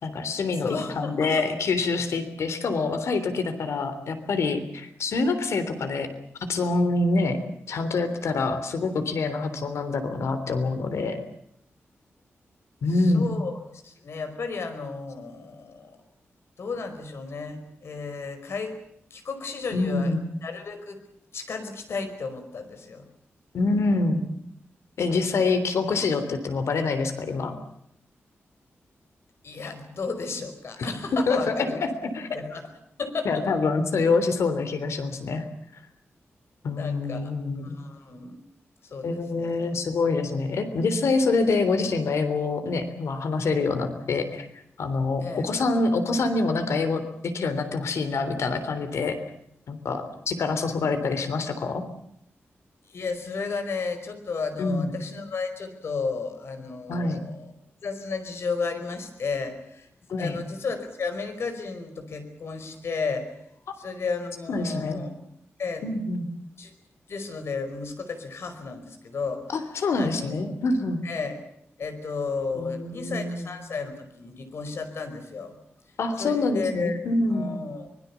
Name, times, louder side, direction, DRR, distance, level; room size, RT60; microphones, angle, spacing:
voice 1, 0.0-6.1 6.4-7.4 7.7-11.2 12.8-13.4 19.7-20.3 23.5-24.3 25.0-27.5 30.8-30.9 31.3-31.6 31.8-32.3 33.2-35.4 36.6-37.8 39.0-44.5 44.8-47.0 47.3-49.2 49.7-51.8 54.6-54.9 56.9-57.2 60.1-60.4 63.7-63.8 64.5-65.0 65.8-66.3 69.5-71.0 72.5-73.5 76.0-77.5, left 3 dB, 90° left, 9 dB, 3.4 m, -26 dB
voice 2, 0.6-1.4 12.9-13.6 13.8-16.0 16.6-18.8 19.1-20.1 20.4-21.0 21.3-23.0 29.4-31.8 32.3-32.7 33.0-33.4 36.8-37.3 37.6-38.3 38.8-39.8 45.2-45.5 52.9-57.5 57.8-59.9 60.2-63.3 63.8-65.1 65.6-65.9 66.6-66.7 67.1-69.4 69.9-70.5 71.0-71.4 71.8-75.6 76.2-77.0 77.3-77.9, left 4 dB, 65° left, 8 dB, 5.0 m, -33 dB
24.5 x 21.5 x 7.1 m, 0.74 s
wide cardioid pair, 140°, 5 cm